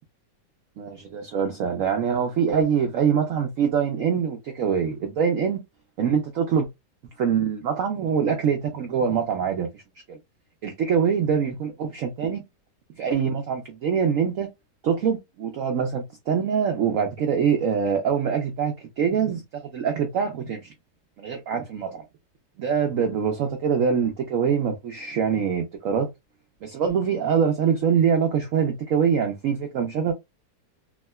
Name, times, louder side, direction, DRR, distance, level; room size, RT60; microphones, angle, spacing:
voice 1, 0.8-5.6 6.0-6.7 7.2-9.8 10.1-10.2 10.6-12.4 13.0-14.5 14.8-19.4 19.7-20.7 21.2-21.9 22.6-26.1 26.6-30.1, right 7 dB, 80° right, 0.7 m, -24 dB
3.6 x 2.1 x 2.3 m
omnidirectional pair, 2.0 m